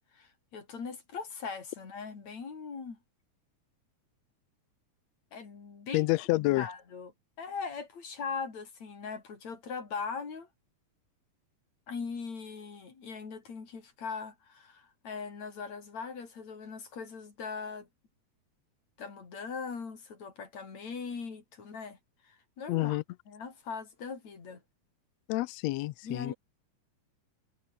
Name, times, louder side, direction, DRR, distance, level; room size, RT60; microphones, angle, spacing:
voice 1, 0.0-3.0 5.3-6.1 6.6-7.1 7.4-10.5 11.9-17.9 19.0-22.0 22.2-23.0 23.3-24.6 26.0-26.3, left 5 dB, 55° left, 5.5 m, -40 dB
voice 2, 5.9-6.7 22.7-23.0 25.3-26.3, left 19 dB, 85° left, 1.5 m, -28 dB
omnidirectional pair, 3.7 m